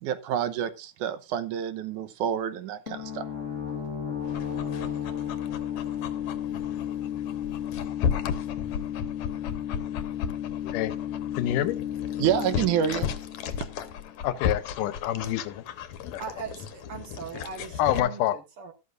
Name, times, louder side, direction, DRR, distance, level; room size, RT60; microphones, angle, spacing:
voice 1, 0.0-3.3 12.2-13.1, right 9 dB, 75° right, 12 dB, 2.3 m, -28 dB
sound 1, 2.9-14.4, left 9 dB, 40° left, 1.0 m, -33 dB
Dog, 4.2-18.0, left 7 dB, 70° left, 2.2 m, -35 dB
voice 2, 10.6-11.0 11.4-11.8 14.2-15.6 16.1-16.2 17.8-18.4, left 12 dB, 85° left, 13 dB, 2.4 m, -27 dB
voice 3, 16.2-18.7, right 6 dB, 55° right, 7 dB, 1.9 m, -40 dB
13.0 x 12.5 x 2.5 m, 0.26 s
omnidirectional pair, 3.6 m